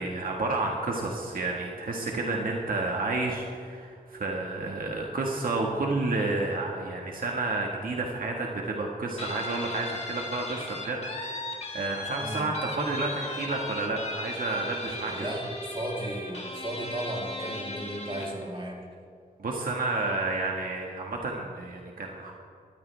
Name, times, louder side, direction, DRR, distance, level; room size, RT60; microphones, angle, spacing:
voice 1, 0.0-15.3 19.4-22.3, right 2 dB, 75° right, 0 dB, 1.7 m, -30 dB
Guitar, 9.2-18.4, left 2 dB, 45° left, 2.9 m, -37 dB
voice 2, 12.2-12.5 15.0-18.8, right 1 dB, 35° right, -3 dB, 3.4 m, -35 dB
19.5 x 14.0 x 3.4 m, 2.2 s
wide cardioid pair, 110°, 15 cm